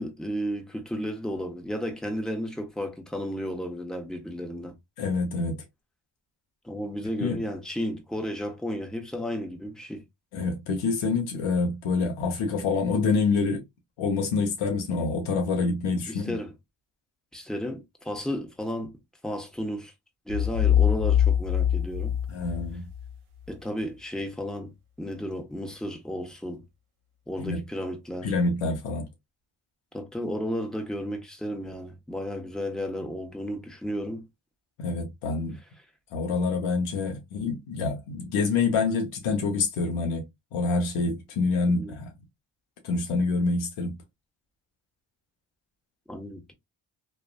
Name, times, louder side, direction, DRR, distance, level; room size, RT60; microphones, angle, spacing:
voice 1, 0.0-4.7 6.6-10.0 16.1-16.5 17.3-18.9 19.2-19.9 20.3-22.1 23.5-24.7 25.0-26.6 27.3-28.3 29.9-34.2 41.7-41.9 46.1-46.5, equal, ahead, 1.0 m, -33 dB
voice 2, 5.0-5.6 7.2-7.4 10.3-13.6 14.0-16.4 22.3-22.9 27.4-27.6 28.2-29.1 34.8-35.6 36.1-40.2 40.5-42.1 42.8-43.9, left 4 dB, 80° left, 0.9 m, -26 dB
sound 1, 20.3-23.1, left 10 dB, 70° right, 0.8 m, -23 dB
3.1 x 2.3 x 2.2 m
supercardioid pair, 45°, 50 cm